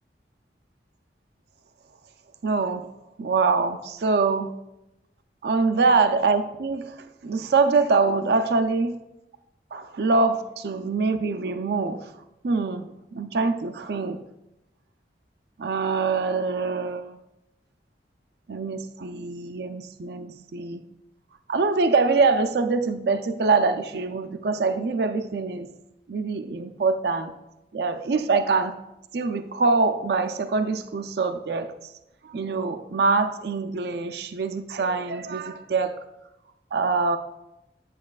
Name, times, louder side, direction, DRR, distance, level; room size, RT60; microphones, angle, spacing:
voice 1, 2.4-2.9 3.2-4.5 5.4-9.0 9.7-12.1 12.4-14.2 15.6-17.2 18.5-20.8 21.5-25.7 26.1-27.3 27.7-28.7 29.1-31.9 32.2-36.0 36.7-37.2, right 4 dB, 65° right, 8 dB, 0.4 m, -24 dB
8.4 x 7.3 x 2.4 m, 0.91 s
head